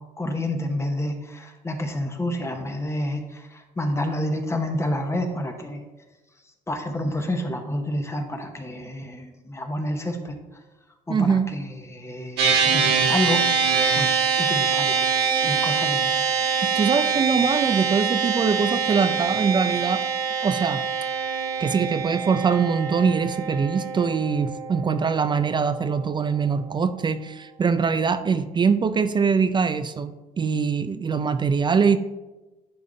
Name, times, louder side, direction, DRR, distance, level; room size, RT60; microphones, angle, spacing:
voice 1, 0.2-5.9 6.7-10.4 11.1-13.4 13.9-15.0 15.4-16.3, left 1 dB, 15° left, 4 dB, 0.9 m, -29 dB
voice 2, 11.1-11.5 16.7-20.1 20.4-20.8 21.6-30.1 30.4-32.0, right 5 dB, 25° right, 11 dB, 0.4 m, -23 dB
sound 1, 12.4-25.9, right 5 dB, 85° right, 1.3 m, -24 dB
11.0 x 3.7 x 3.8 m, 1.1 s
cardioid pair, 110°, 17 cm